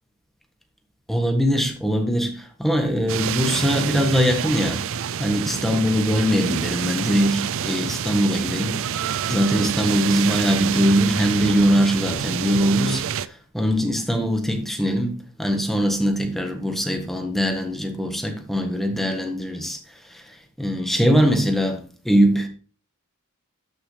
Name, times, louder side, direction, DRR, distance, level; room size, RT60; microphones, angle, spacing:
voice 1, 1.1-4.8 5.2-8.8 9.3-13.3 13.5-19.8 20.1-22.5, equal, ahead, 1.4 m, -22 dB
sound 1, 3.1-13.3, right 8 dB, 60° right, 0.4 m, -27 dB
12.5 x 6.0 x 3.3 m
head